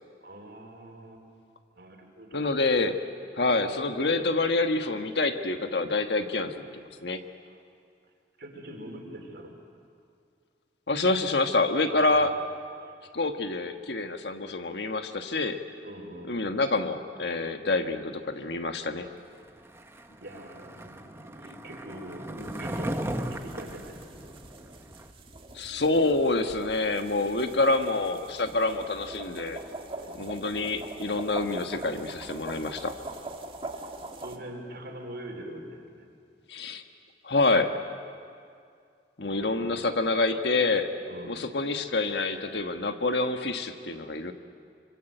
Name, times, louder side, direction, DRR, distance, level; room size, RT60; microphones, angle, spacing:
voice 1, 0.2-1.2 1.8-2.5 7.4-7.6 8.4-9.5 11.9-12.4 12.8-12.9 15.8-16.4 20.2-24.0 30.0-30.3 33.8-33.9 34.2-36.1 39.3-39.9 41.1-41.5, right 1 dB, 70° right, 2 dB, 4.1 m, -43 dB
voice 2, 2.3-3.0 3.4-7.2 10.9-12.3 13.1-15.6 16.3-19.1 25.5-29.6 30.2-32.9 36.5-36.8 37.2-37.7 39.2-40.9 41.3-44.3, left 2 dB, 75° left, 6 dB, 1.5 m, -27 dB
Skateboard, 19.6-25.1, right 1 dB, 15° right, 1.1 m, -37 dB
sound 1, 22.4-34.4, right 2 dB, 30° right, 1.7 m, -43 dB
26.0 x 25.5 x 7.9 m, 2.3 s
head